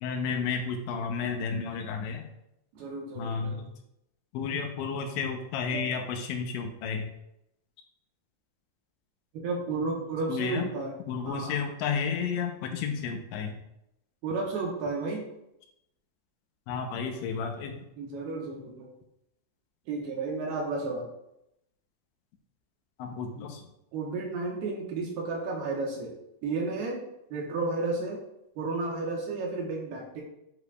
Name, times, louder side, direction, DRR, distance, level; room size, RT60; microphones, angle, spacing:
voice 1, 0.0-2.3 3.2-3.7 4.3-7.1 10.3-10.7 11.1-13.6 16.7-17.9 23.0-23.6, left 6 dB, 85° left, 4 dB, 3.1 m, -32 dB
voice 2, 2.7-3.6 5.7-5.9 9.3-10.9 11.3-11.6 14.2-15.3 18.0-18.9 19.9-21.1 23.9-26.1 26.4-27.0 27.3-28.2 28.6-30.2, right 3 dB, 75° right, -2 dB, 2.8 m, -32 dB
9.8 x 4.9 x 2.3 m, 0.84 s
omnidirectional pair, 5.2 m